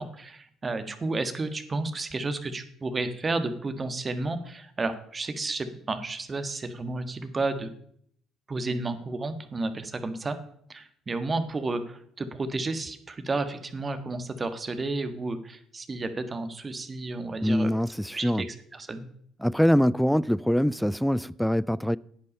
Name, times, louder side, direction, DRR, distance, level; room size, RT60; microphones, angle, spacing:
voice 1, 0.0-7.7 8.5-10.4 10.7-17.7 18.1-19.1, right 3 dB, 35° right, 1.5 m, -32 dB
voice 2, 17.4-18.5 19.4-22.0, equal, ahead, 0.4 m, -24 dB
10.5 x 8.4 x 5.4 m
hypercardioid pair, 60°, 0 cm